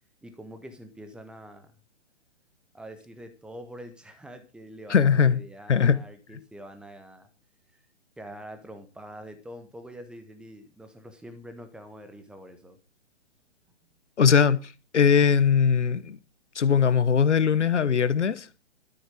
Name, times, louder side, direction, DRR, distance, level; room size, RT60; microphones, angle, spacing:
voice 1, 0.2-1.7 2.7-7.3 8.2-12.8, equal, 5° right, 1.4 m, -45 dB
voice 2, 4.9-5.4 5.7-6.0 14.2-16.2 16.5-18.7, left 6 dB, 80° left, 1.2 m, -21 dB
13.0 x 7.8 x 6.4 m
hypercardioid pair, 130°, 35 cm